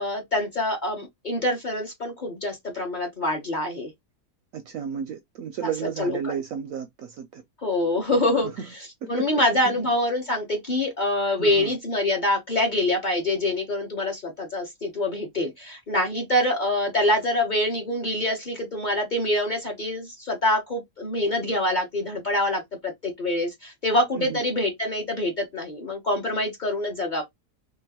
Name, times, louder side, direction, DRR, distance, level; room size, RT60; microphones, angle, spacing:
voice 1, 0.0-3.9 5.8-6.3 7.6-27.2, left 1 dB, 35° left, 0.8 m, -25 dB
voice 2, 4.5-7.4 8.4-8.5 9.0-9.3 11.4-11.7 24.2-24.4, right 8 dB, 70° right, 0.8 m, -33 dB
3.8 x 2.2 x 2.8 m
omnidirectional pair, 1.8 m